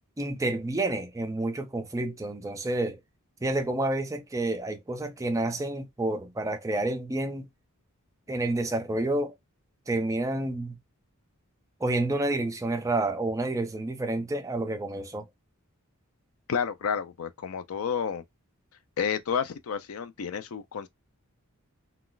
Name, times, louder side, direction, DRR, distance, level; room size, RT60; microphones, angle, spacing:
voice 1, 0.2-3.0 3.4-7.5 8.3-9.3 9.9-10.8 11.8-15.3, right 2 dB, 15° right, 0.4 m, -29 dB
voice 2, 16.5-18.2 19.0-20.9, left 7 dB, 65° left, 0.4 m, -30 dB
2.4 x 2.3 x 3.7 m
head